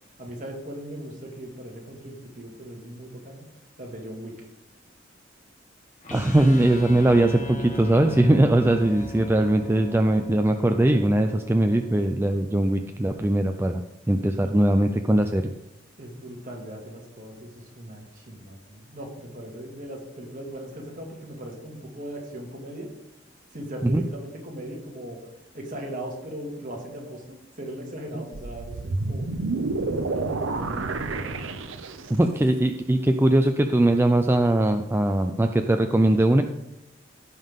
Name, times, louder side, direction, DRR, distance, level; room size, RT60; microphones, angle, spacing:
voice 1, 0.2-3.4 3.8-4.5 16.0-22.9 23.5-25.3 25.5-29.3 29.8-31.3, right 1 dB, 45° right, -1 dB, 2.2 m, -38 dB
sound 1, 6.0-12.1, left 1 dB, 40° left, 1.4 m, -39 dB
voice 2, 6.1-13.8 14.1-15.4 23.9-24.0 32.1-36.4, right 1 dB, 10° right, 5 dB, 0.4 m, -20 dB
sound 2, 28.3-32.3, right 3 dB, 80° right, 0.7 m, -29 dB
16.0 x 5.7 x 3.7 m, 0.87 s
head